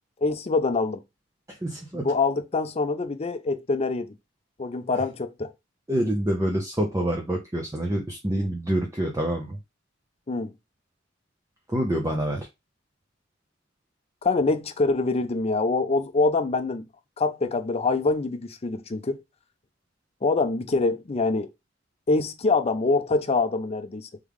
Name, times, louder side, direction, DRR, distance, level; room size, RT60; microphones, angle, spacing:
voice 1, 0.2-1.0 1.9-4.2 4.6-5.5 10.3-10.5 14.2-16.9 17.2-19.2 20.2-21.5 22.1-24.1, left 3 dB, 30° left, 0.5 m, -25 dB
voice 2, 1.5-2.1 5.9-9.6 11.7-12.5, right 1 dB, 15° right, 0.7 m, -27 dB
3.6 x 3.4 x 3.4 m
head